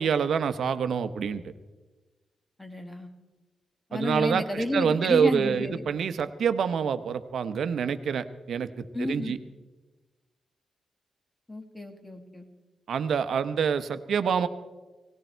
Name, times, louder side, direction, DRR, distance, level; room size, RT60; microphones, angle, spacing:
voice 1, 0.0-1.4 3.9-8.7 9.0-9.4 12.9-14.5, right 7 dB, 70° right, 11 dB, 0.9 m, -26 dB
voice 2, 2.6-3.1 3.9-5.8 8.9-9.4 11.5-12.5, left 1 dB, 10° left, 5 dB, 1.7 m, -31 dB
18.5 x 17.0 x 4.5 m, 1.2 s
wide cardioid pair, 155°, 0 cm